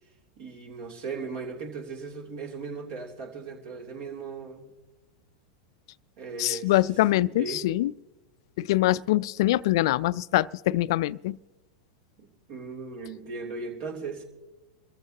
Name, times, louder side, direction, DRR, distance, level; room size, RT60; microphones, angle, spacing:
voice 1, 0.4-4.7 6.2-6.8 7.4-7.7 12.2-14.2, right 4 dB, 55° right, 3.1 m, -37 dB
voice 2, 6.4-7.9 8.6-11.4, left 16 dB, 60° left, 0.4 m, -24 dB
27.0 x 14.5 x 2.9 m
hypercardioid pair, 95°, 3 cm